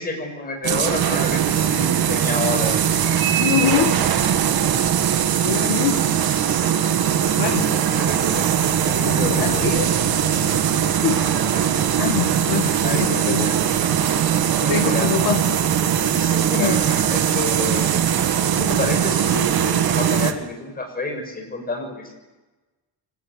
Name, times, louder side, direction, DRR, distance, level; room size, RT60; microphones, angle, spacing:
voice 1, 0.0-2.8 3.5-4.1 7.5-8.5 8.8-10.0 12.8-13.6 14.6-15.1 16.1-18.0 18.6-22.1, left 2 dB, 20° left, 3 dB, 7.1 m, -29 dB
sound 1, 0.6-20.3, right 9 dB, 60° right, 2.0 m, -20 dB
voice 2, 3.4-3.9 5.4-6.0 7.4-7.7 9.1-9.9 11.0-11.2 12.0-13.5 14.7-15.6 16.5-16.8, left 10 dB, 75° left, 7 dB, 1.7 m, -24 dB
25.5 x 19.0 x 8.5 m, 1.1 s
cardioid pair, 160°, 41 cm